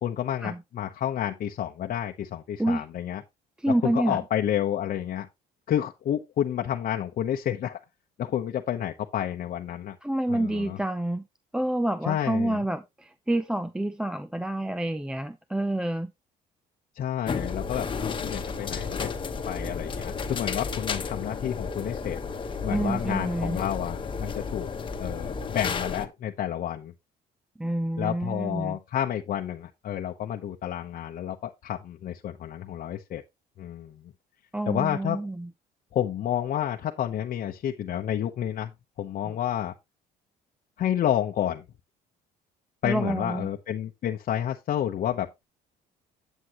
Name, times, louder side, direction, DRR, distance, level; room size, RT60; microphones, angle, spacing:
voice 1, 0.0-3.2 3.7-5.3 5.7-7.8 8.2-10.0 10.3-10.8 12.1-12.6 16.9-19.1 19.5-22.2 22.6-24.7 25.0-26.9 28.0-33.2 33.6-34.1 34.7-35.2 35.9-38.7 39.0-39.7 40.8-41.6 42.8-45.4, left 10 dB, 55° left, 0.9 m, -30 dB
voice 2, 3.6-4.2 10.0-11.3 11.5-16.1 22.7-23.6 27.6-28.8 34.5-35.5 39.2-39.4 42.8-43.5, right 1 dB, 5° right, 0.5 m, -28 dB
sound 1, 17.3-26.1, left 5 dB, 30° left, 1.2 m, -32 dB
9.7 x 7.7 x 3.0 m
cardioid pair, 110°, 17 cm